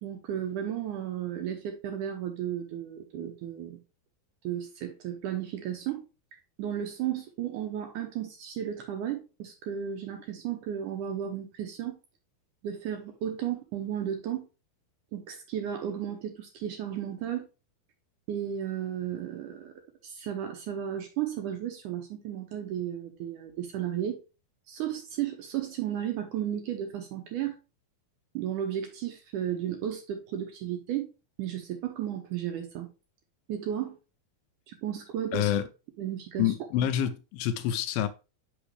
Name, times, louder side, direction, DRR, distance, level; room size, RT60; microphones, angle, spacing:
voice 1, 0.0-3.8 4.4-6.0 6.6-12.0 12.6-14.5 15.1-17.5 18.3-19.7 20.0-24.2 24.7-27.6 28.3-31.1 31.4-32.9 33.5-34.0 34.7-35.5 36.0-36.5, right 10 dB, 75° right, 2.0 m, -34 dB
voice 2, 35.3-35.6 36.4-38.1, left 11 dB, 80° left, 2.3 m, -27 dB
6.1 x 5.6 x 3.2 m
omnidirectional pair, 4.3 m